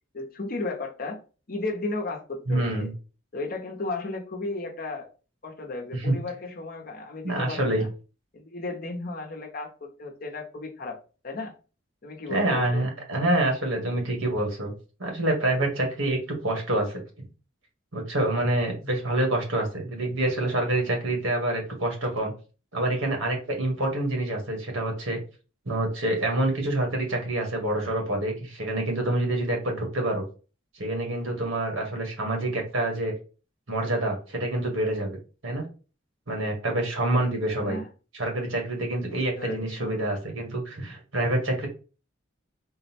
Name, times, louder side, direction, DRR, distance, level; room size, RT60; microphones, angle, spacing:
voice 1, 0.1-1.2 1.5-2.9 3.3-5.1 5.4-7.9 8.3-11.0 11.2-11.5 12.0-12.9 37.5-37.9 39.1-40.2, left 2 dB, 45° left, 2 dB, 0.8 m, -34 dB
voice 2, 2.5-2.9 6.0-6.1 7.2-7.8 12.3-14.7 15.0-17.0 17.9-22.3 22.7-25.2 25.6-30.2 30.7-33.1 33.7-35.2 35.4-35.7 36.3-37.8 38.1-41.7, right 1 dB, 80° right, 2 dB, 1.3 m, -27 dB
3.8 x 2.1 x 4.1 m, 0.35 s
head